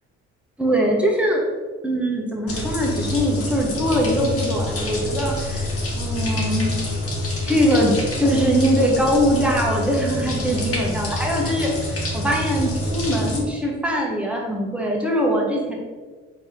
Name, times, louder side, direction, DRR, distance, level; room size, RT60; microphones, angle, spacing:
voice 1, 0.6-1.4 1.8-5.7 6.0-6.7 7.5-15.8, equal, 5° right, -1 dB, 1.1 m, -22 dB
sound 1, 2.5-13.4, left 1 dB, 40° left, 1.3 m, -26 dB
3.9 x 3.1 x 3.9 m, 1.4 s
hypercardioid pair, 50°, 36 cm